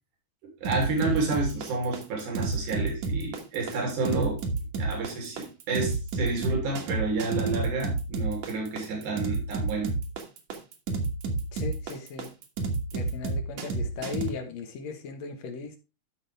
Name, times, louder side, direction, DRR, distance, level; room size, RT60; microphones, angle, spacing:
sound 1, 0.6-14.3, right 3 dB, 65° right, 2.6 m, -30 dB
voice 1, 0.6-4.4 4.8-9.9, right 3 dB, 80° right, 4.2 m, -30 dB
voice 2, 11.5-12.3 12.9-15.8, left 6 dB, 60° left, 2.5 m, -37 dB
13.0 x 5.3 x 3.4 m
omnidirectional pair, 3.5 m